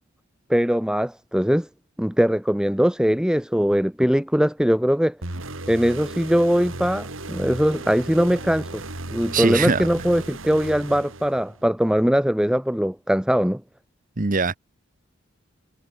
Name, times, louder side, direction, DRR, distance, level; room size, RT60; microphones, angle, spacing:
voice 1, 0.5-1.7 2.0-5.2 5.7-8.8 9.1-13.6, equal, 5° right, 0.7 m, -21 dB
sound 1, 5.2-11.7, right 2 dB, 75° right, 3.1 m, -35 dB
voice 2, 9.3-9.9 14.2-14.6, right 4 dB, 40° right, 1.0 m, -22 dB
head